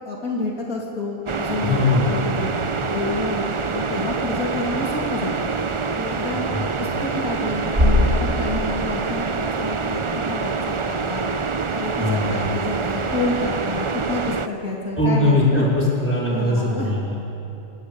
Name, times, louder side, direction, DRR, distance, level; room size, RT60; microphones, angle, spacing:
voice 1, 0.0-2.5 2.9-5.5 5.9-6.5 6.8-11.3 11.7-15.7 16.3-16.9, left 2 dB, 70° left, -2 dB, 3.3 m, -29 dB
sound 1, 1.2-14.5, right 4 dB, 45° right, 0.4 m, -26 dB
voice 2, 1.6-2.4 6.5-6.7 12.0-12.5 15.0-17.3, left 2 dB, 10° left, -6 dB, 5.3 m, -21 dB
sound 2, 2.0-13.6, left 1 dB, 25° right, 7.0 m, -30 dB
28.5 x 17.0 x 7.0 m, 2.9 s
omnidirectional pair, 1.5 m